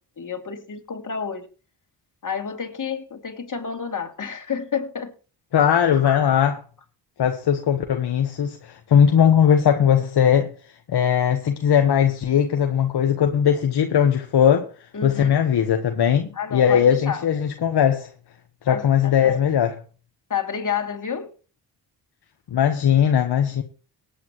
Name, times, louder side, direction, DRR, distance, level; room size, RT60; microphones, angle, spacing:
voice 1, 0.2-1.5 2.2-5.1 6.0-6.4 14.9-15.3 16.3-17.3 18.7-19.4 20.3-21.3, left 7 dB, 45° left, 2.7 m, -30 dB
voice 2, 5.5-6.6 7.2-10.5 10.9-14.7 15.0-18.1 18.6-19.7 22.5-23.6, left 8 dB, 65° left, 1.2 m, -19 dB
18.5 x 8.8 x 3.0 m
cardioid pair, 65°, 43 cm